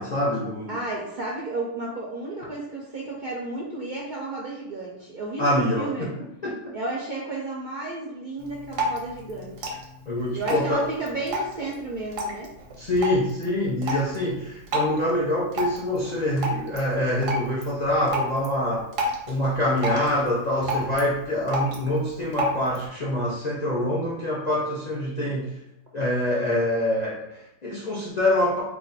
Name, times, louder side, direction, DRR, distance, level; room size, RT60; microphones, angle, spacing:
voice 1, 0.0-0.7 5.4-6.1 6.4-6.6 10.1-10.8 12.8-18.9 19.3-25.5 25.9-28.6, left 1 dB, 55° left, -5 dB, 0.4 m, -25 dB
voice 2, 0.7-6.1 6.7-9.7 10.3-12.5, right 2 dB, 60° right, -3 dB, 0.5 m, -32 dB
Drip, 8.4-22.9, equal, 85° right, 1.1 m, -33 dB
2.4 x 2.3 x 3.9 m, 0.86 s
omnidirectional pair, 1.3 m